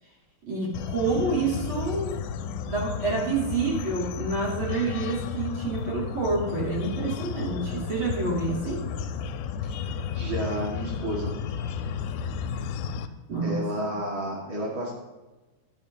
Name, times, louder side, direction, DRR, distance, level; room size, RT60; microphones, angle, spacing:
voice 1, 0.4-2.2 2.7-8.9 13.3-13.9, right 3 dB, 30° right, -5 dB, 3.5 m, -28 dB
sound 1, 0.7-13.1, left 7 dB, 85° left, 2.9 m, -33 dB
voice 2, 10.1-11.3 13.4-14.9, right 1 dB, 55° right, -3 dB, 1.3 m, -31 dB
15.0 x 11.0 x 2.8 m, 1.2 s
omnidirectional pair, 5.3 m